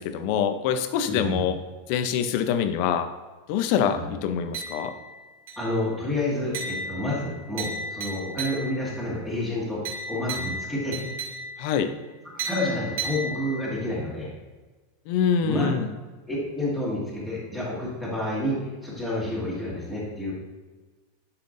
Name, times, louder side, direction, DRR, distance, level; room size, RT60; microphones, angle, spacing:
voice 1, 0.0-1.6 1.9-3.1 3.5-4.9 11.6-11.9 15.1-15.9, left 8 dB, 40° left, 9 dB, 0.5 m, -25 dB
voice 2, 1.0-1.4 3.9-4.0 5.6-11.0 12.3-14.3 15.4-15.7 16.3-20.3, left 1 dB, 5° right, -7 dB, 1.8 m, -29 dB
sound 1, 4.5-5.1 5.5-5.9 6.5-9.0 9.8-11.8 12.4-13.8, right 2 dB, 65° right, 2.4 m, -34 dB
10.5 x 5.7 x 2.6 m, 1.3 s
supercardioid pair, 175°, 0 cm